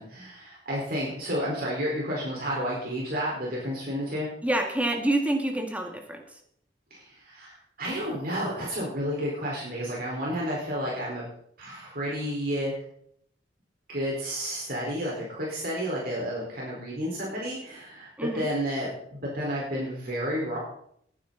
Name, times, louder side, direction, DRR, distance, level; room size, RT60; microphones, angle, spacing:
voice 1, 0.0-4.3 6.9-11.2 11.6-12.7 13.9-18.1 18.3-20.6, equal, 55° right, -4 dB, 4.4 m, -31 dB
voice 2, 4.4-6.2 18.2-18.5, right 1 dB, 10° right, 3 dB, 2.0 m, -27 dB
20.0 x 10.0 x 4.1 m, 0.68 s
head